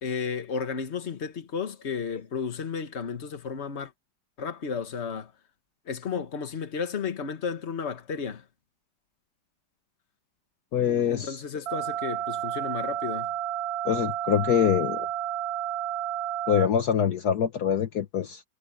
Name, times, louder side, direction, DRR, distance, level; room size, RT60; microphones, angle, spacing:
voice 1, 0.0-3.9 4.4-5.3 5.9-8.5 11.1-13.3, left 6 dB, 40° left, 1.6 m, -33 dB
voice 2, 10.7-11.4 13.8-15.1 16.5-18.4, left 9 dB, 65° left, 1.5 m, -24 dB
sound 1, 11.7-16.7, right 11 dB, 65° right, 1.2 m, -31 dB
omnidirectional pair, 1.9 m